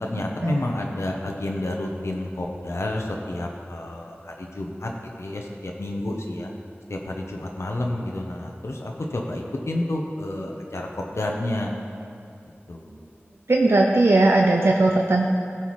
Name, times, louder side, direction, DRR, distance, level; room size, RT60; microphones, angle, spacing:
voice 1, 0.0-4.9 5.2-6.5 6.9-11.7 12.7-12.9, left 1 dB, 85° left, 0 dB, 0.7 m, -30 dB
voice 2, 13.5-15.3, right 2 dB, 65° right, 0 dB, 0.5 m, -18 dB
16.0 x 5.6 x 3.1 m, 2.6 s
wide cardioid pair, 50°, 5 cm